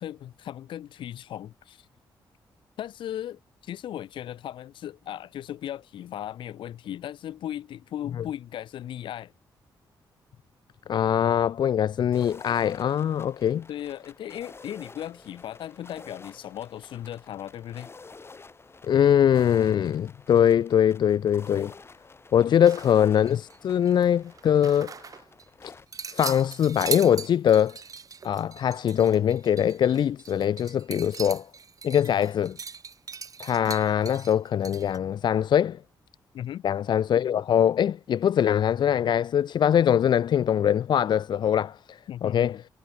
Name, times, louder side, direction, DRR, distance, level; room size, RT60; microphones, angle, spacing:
voice 1, 0.0-1.9 2.8-9.3 13.7-17.9 22.5-22.6 32.0-32.2 36.3-36.6 42.1-42.6, left 11 dB, 90° left, 5.3 m, -37 dB
voice 2, 10.9-13.6 18.8-21.7 22.3-24.9 25.6-25.7 26.1-27.8 28.2-31.5 31.8-32.6 33.4-35.8 36.6-42.5, left 9 dB, 65° left, 0.7 m, -22 dB
sound 1, 12.1-25.9, left 4 dB, 30° left, 5.4 m, -50 dB
sound 2, 22.6-23.6 23.8-25.4 25.9-35.0, right 6 dB, 45° right, 2.5 m, -39 dB
cardioid pair, 95°, 8 cm